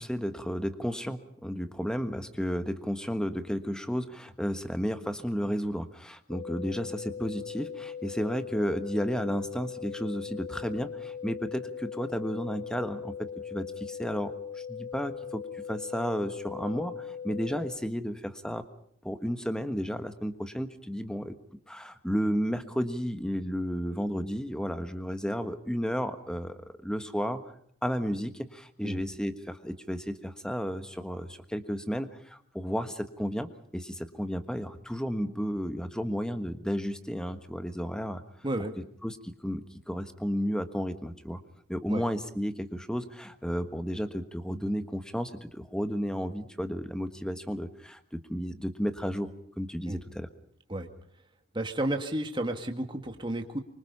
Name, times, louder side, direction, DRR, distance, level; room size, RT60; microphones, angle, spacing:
voice 1, 0.0-18.6 19.0-21.3 21.7-27.4 27.8-38.2 39.0-41.4 41.7-49.3 49.6-50.3, equal, 5° left, 9 dB, 1.4 m, -33 dB
sound 1, 6.3-17.7, left 7 dB, 50° left, 4.2 m, -40 dB
voice 2, 38.4-38.7 41.9-42.0 49.9-50.0 50.7-50.9 51.5-53.6, right 1 dB, 20° right, 5 dB, 2.0 m, -32 dB
25.0 x 24.5 x 5.5 m, 0.65 s
head